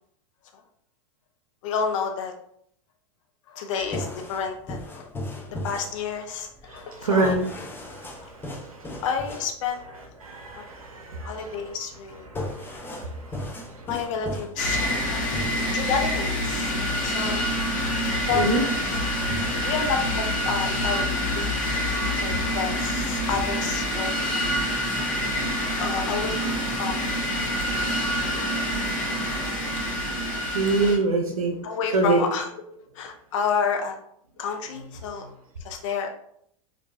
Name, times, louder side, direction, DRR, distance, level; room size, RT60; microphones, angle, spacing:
voice 1, 1.6-2.3 3.5-5.1 5.6-7.3 8.2-8.3 9.0-9.9 10.6-10.7 11.2-12.3 13.9-15.3 15.7-16.7 17.0-17.4 18.3-18.5 19.6-21.1 21.3-21.5 22.2-24.5 25.1-25.2 25.8-27.0 30.8-30.9 31.6-32.5 33.0-34.0 34.4-35.2 35.6-36.1, left 6 dB, 65° left, 4 dB, 0.5 m, -30 dB
sound 1, 3.8-20.3, left 1 dB, 10° left, 0.5 m, -38 dB
voice 2, 7.0-7.4 10.2-11.5 15.2-15.6 18.3-18.6 28.9-29.2 29.4-29.6 30.5-31.6 31.9-32.3, right 3 dB, 85° right, 1 dB, 0.6 m, -24 dB
sound 2, 14.6-31.0, equal, 45° left, 1.4 m, -26 dB
4.4 x 2.6 x 2.4 m, 0.69 s
hypercardioid pair, 95°, 18 cm